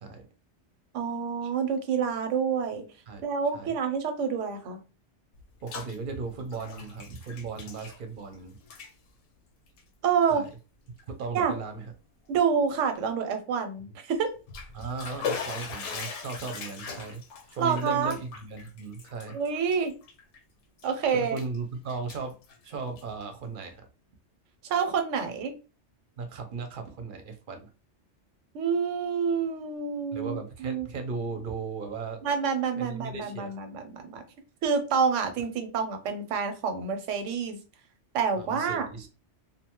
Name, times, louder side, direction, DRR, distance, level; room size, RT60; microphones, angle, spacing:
voice 1, 0.9-2.8 3.2-4.8 10.0-10.4 11.3-11.6 12.3-14.3 17.6-18.2 19.3-19.9 20.8-21.4 24.7-25.5 28.5-30.9 32.2-34.2 34.6-37.6 38.1-38.9, right 6 dB, 90° right, 7 dB, 1.0 m, -28 dB
Bathtub (filling or washing), 5.3-6.0 6.3-8.4 8.6-8.9 9.7-9.8 10.5-10.6 11.0-11.1 14.3-20.4 20.8-21.6 21.9-23.2, left 6 dB, 80° left, 0.9 m, -39 dB
voice 2, 5.6-8.6 10.3-10.5 11.1-11.9 14.7-19.4 21.1-22.4 22.6-23.9 26.2-27.7 30.1-32.2 32.8-33.6 38.4-39.1, right 4 dB, 55° right, 5 dB, 0.7 m, -36 dB
2.6 x 2.2 x 2.9 m, 0.33 s
omnidirectional pair, 1.2 m